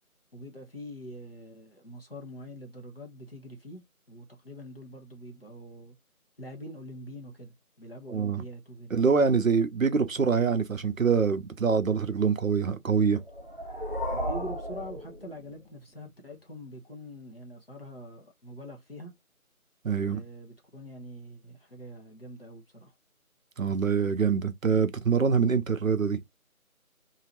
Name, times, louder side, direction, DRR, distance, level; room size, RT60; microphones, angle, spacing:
voice 1, 0.3-3.8 4.1-5.9 6.4-8.9 14.1-19.1 20.0-22.9, equal, 40° left, 1.2 m, -44 dB
voice 2, 8.1-8.4 8.9-13.2 19.8-20.2 23.6-26.2, right 5 dB, 65° right, 0.6 m, -25 dB
sound 1, 13.2-15.8, equal, 35° right, 1.0 m, -35 dB
3.8 x 2.8 x 2.9 m
figure-of-eight pair, 175°, 43 cm